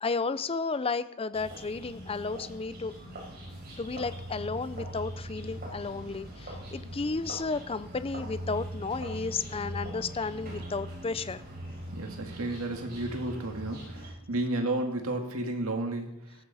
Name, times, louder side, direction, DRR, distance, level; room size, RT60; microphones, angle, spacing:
voice 1, 0.0-2.9 3.8-11.4, left 4 dB, 25° left, 14 dB, 0.5 m, -33 dB
sound 1, 1.3-14.1, right 1 dB, 45° right, 5.8 m, -41 dB
voice 2, 11.9-16.3, right 2 dB, 80° right, 4 dB, 2.1 m, -32 dB
15.0 x 13.5 x 4.2 m, 0.88 s
head